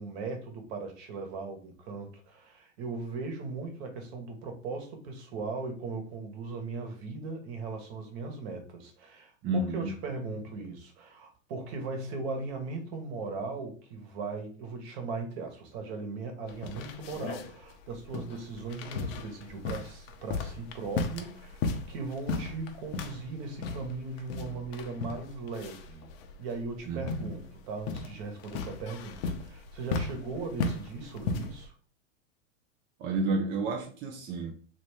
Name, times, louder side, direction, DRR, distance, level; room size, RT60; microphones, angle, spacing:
voice 1, 0.0-21.6 21.9-26.1 26.4-31.7, right 3 dB, 55° right, 1.3 m, -38 dB
voice 2, 9.4-10.1 26.9-27.3 33.0-34.5, right 3 dB, 30° right, 0.5 m, -31 dB
sound 1, 16.5-31.7, left 4 dB, 50° left, 0.7 m, -37 dB
2.9 x 2.9 x 3.3 m
hypercardioid pair, 110°, 38 cm